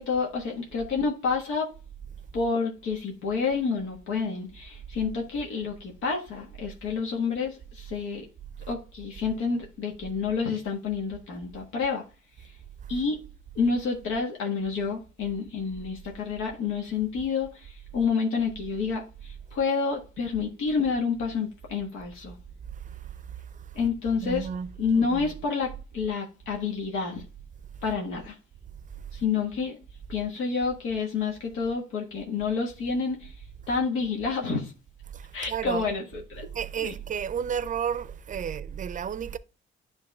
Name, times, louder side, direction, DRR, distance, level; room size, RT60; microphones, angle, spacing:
voice 1, 0.0-1.7 2.3-8.3 8.7-12.0 12.4-12.5 12.9-13.2 13.5-22.3 23.7-24.5 24.8-27.2 27.8-28.4 29.1-29.8 30.1-33.3 33.7-34.7 35.3-36.5 36.8-36.9, left 5 dB, 90° left, 1.4 m, -29 dB
voice 2, 22.8-23.8 24.2-25.3 35.1-35.9 36.5-39.4, right 8 dB, 40° right, 0.5 m, -33 dB
9.9 x 3.4 x 3.2 m
cardioid pair, 90°, 20 cm